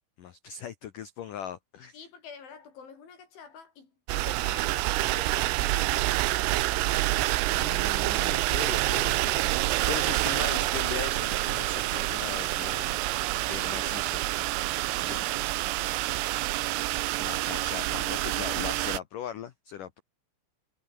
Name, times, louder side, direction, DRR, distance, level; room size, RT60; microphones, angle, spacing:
voice 1, 0.2-2.0 7.5-14.2 15.0-15.2 17.2-20.0, left 9 dB, 90° left, 1.8 m, -39 dB
voice 2, 1.9-6.2 14.9-15.8, left 6 dB, 65° left, 7.9 m, -48 dB
sound 1, 4.1-19.0, right 17 dB, 85° right, 3.7 m, -27 dB
omnidirectional pair, 5.8 m